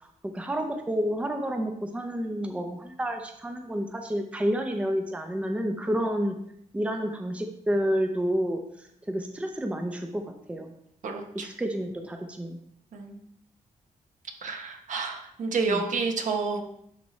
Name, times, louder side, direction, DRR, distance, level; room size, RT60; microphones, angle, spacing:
voice 1, 0.0-6.3 6.7-10.7 11.4-12.6 15.7-15.8, equal, 10° right, 5 dB, 0.5 m, -30 dB
voice 2, 11.0-11.5 12.9-13.2 14.4-16.6, right 4 dB, 70° right, 3 dB, 1.1 m, -29 dB
11.0 x 4.1 x 3.1 m, 0.74 s
wide cardioid pair, 150°, 14 cm